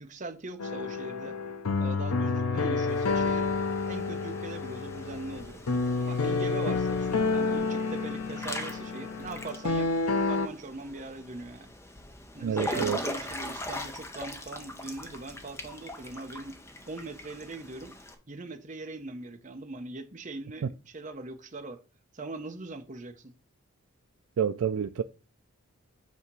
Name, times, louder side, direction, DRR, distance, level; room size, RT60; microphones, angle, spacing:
voice 1, 0.0-1.4 1.8-3.5 3.9-5.6 6.1-11.7 12.3-16.6 16.9-17.9 18.3-21.8 22.1-23.3, right 3 dB, 35° right, 0.8 m, -41 dB
sound 1, 0.6-10.5, left 4 dB, 85° left, 0.7 m, -29 dB
Water / Splash splatter / Drip, 2.9-18.1, left 1 dB, 10° left, 0.7 m, -41 dB
voice 2, 12.4-13.0 20.6-20.7 24.4-25.0, right 7 dB, 70° right, 0.3 m, -28 dB
8.3 x 2.9 x 6.1 m
head